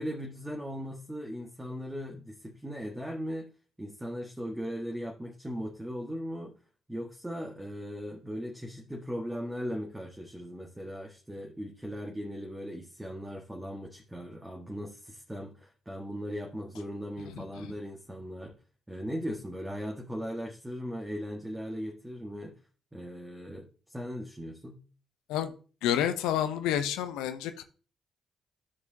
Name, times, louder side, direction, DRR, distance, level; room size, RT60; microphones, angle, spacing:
voice 1, 0.0-3.5 3.8-6.5 6.9-18.6 18.9-22.5 22.9-24.8, equal, 10° right, 0 dB, 1.7 m, -38 dB
voice 2, 25.8-27.6, left 10 dB, 75° left, 9 dB, 0.7 m, -29 dB
12.5 x 4.9 x 2.8 m, 0.37 s
hypercardioid pair, 45°, 0 cm